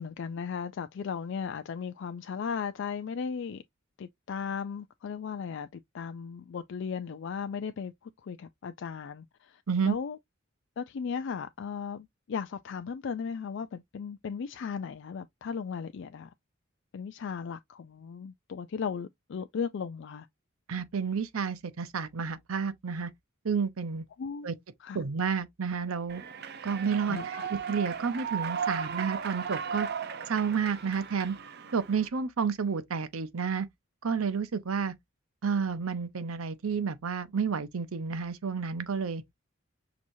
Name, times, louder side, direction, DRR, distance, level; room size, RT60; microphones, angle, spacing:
voice 1, 0.0-3.6 4.0-5.7 5.9-10.2 10.8-16.3 16.9-20.3 24.2-24.5 24.8-25.0 27.1-27.5, left 6 dB, 60° left, 0.3 m, -36 dB
voice 2, 20.7-23.1 23.4-24.0 24.4-24.5 24.9-26.2 26.6-29.9 30.3-31.4 31.7-33.7 34.0-34.9 35.4-39.2, right 6 dB, 90° right, 0.7 m, -30 dB
Human voice / Clapping / Cheering, 26.1-32.1, right 6 dB, 50° right, 0.6 m, -36 dB
6.0 x 2.8 x 2.7 m
head